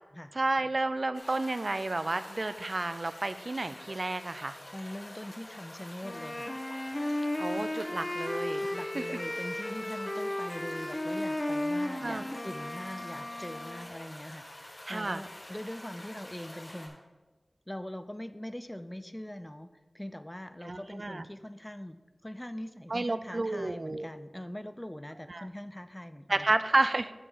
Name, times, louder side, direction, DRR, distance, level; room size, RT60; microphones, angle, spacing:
voice 1, 0.3-4.6 7.4-8.6 8.9-9.2 12.0-12.3 14.9-15.2 20.6-21.2 22.9-24.1 25.3-25.5 26.3-27.1, right 2 dB, 60° right, 12 dB, 0.4 m, -31 dB
sound 1, 1.1-16.9, left 1 dB, 60° left, 2.3 m, -48 dB
voice 2, 4.7-6.5 8.6-17.0 17.7-26.5, left 1 dB, 15° left, 11 dB, 0.5 m, -42 dB
Wind instrument woodwind instrument, 6.0-13.9, left 1 dB, 35° left, 1.0 m, -35 dB
11.0 x 3.7 x 7.0 m, 1.2 s
wide cardioid pair, 50°, 0 cm